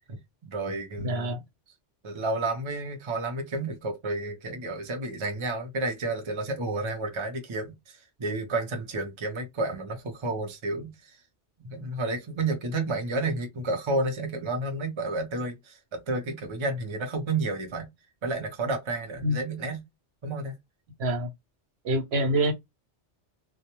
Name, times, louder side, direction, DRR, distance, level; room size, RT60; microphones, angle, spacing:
voice 1, 0.4-1.3 2.0-11.2 11.6-17.9 18.2-19.8 20.2-20.5, right 2 dB, 35° right, 0.5 m, -31 dB
voice 2, 1.0-1.4 19.2-19.4 21.0-21.3 21.8-22.5, right 1 dB, 65° right, 0.9 m, -25 dB
2.2 x 2.2 x 2.9 m
omnidirectional pair, 1.2 m